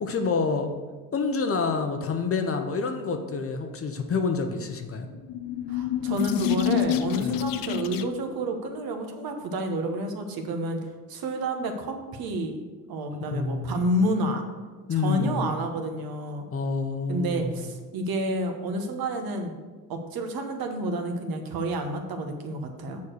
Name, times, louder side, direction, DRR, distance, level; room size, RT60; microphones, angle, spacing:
voice 1, 0.0-0.7 1.1-5.1 7.2-7.4 13.1-13.9 14.9-15.5 16.5-17.6, left 4 dB, 30° left, 5 dB, 0.9 m, -28 dB
sound 1, 5.1-8.3, left 12 dB, 50° left, 0.6 m, -28 dB
voice 2, 5.7-10.8 11.1-12.6 12.9-14.4 14.9-16.5 17.1-19.5 19.9-23.0, right 1 dB, 50° right, 5 dB, 1.3 m, -29 dB
7.1 x 4.7 x 6.4 m, 1.3 s
hypercardioid pair, 75°, 47 cm